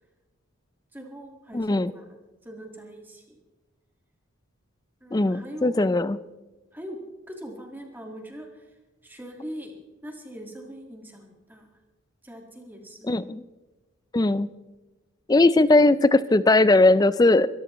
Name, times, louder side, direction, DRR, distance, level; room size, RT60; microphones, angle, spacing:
voice 1, 0.9-3.4 5.0-6.0 6.7-7.0 7.3-8.7 9.0-9.7 10.0-11.7 12.2-13.1, equal, 10° right, 1 dB, 1.7 m, -41 dB
voice 2, 1.5-1.9 5.1-6.2 13.1-13.4 14.1-14.5 15.3-17.5, left 2 dB, 15° left, 16 dB, 0.3 m, -19 dB
24.0 x 14.0 x 3.0 m, 1.2 s
head